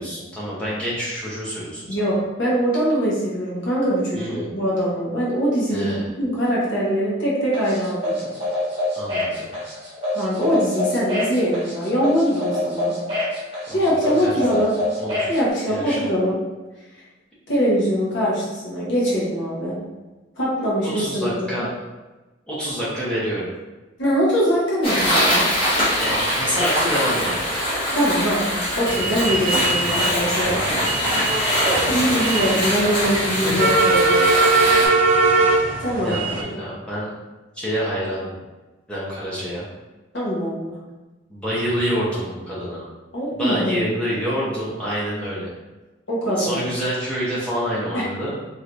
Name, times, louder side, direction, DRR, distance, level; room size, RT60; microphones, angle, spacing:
voice 1, 0.0-2.1 4.1-4.5 5.7-6.1 8.9-9.5 13.7-14.7 15.0-15.4 15.7-16.1 20.8-21.7 22.5-23.5 26.0-27.5 31.6-32.3 33.4-33.6 36.0-37.1 37.5-38.3 38.9-39.6 41.3-42.9 43.3-45.5 46.4-48.3, equal, 5° left, -9 dB, 0.8 m, -27 dB
voice 2, 1.9-5.9 6.2-8.3 10.1-13.0 13.7-14.7 15.3-16.4 17.5-19.8 20.4-21.3 24.0-25.5 27.9-30.9 31.3-34.2 35.1-35.4 35.8-36.4 40.1-40.8 43.1-43.9 46.1-46.6 47.9-48.1, equal, 75° left, -7 dB, 1.1 m, -22 dB
sound 1, 7.5-15.4, left 1 dB, 30° right, 1.1 m, -26 dB
sound 2, 24.8-34.9, equal, 30° left, 1.2 m, -23 dB
sound 3, 28.9-36.4, right 3 dB, 45° right, 0.4 m, -21 dB
3.0 x 3.0 x 2.5 m, 1.2 s
head